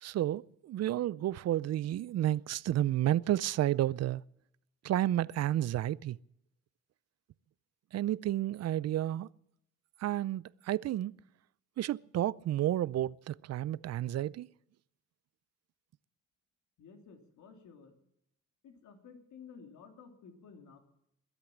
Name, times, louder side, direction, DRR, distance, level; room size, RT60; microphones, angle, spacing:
voice 1, 0.0-4.2 4.8-6.2 7.9-9.3 10.0-11.1 11.8-14.5, right 13 dB, 55° right, 0.5 m, -31 dB
voice 2, 16.8-18.0 18.6-20.8, left 5 dB, 75° left, 3.2 m, -53 dB
21.5 x 8.3 x 7.3 m
cardioid pair, 90°, 30 cm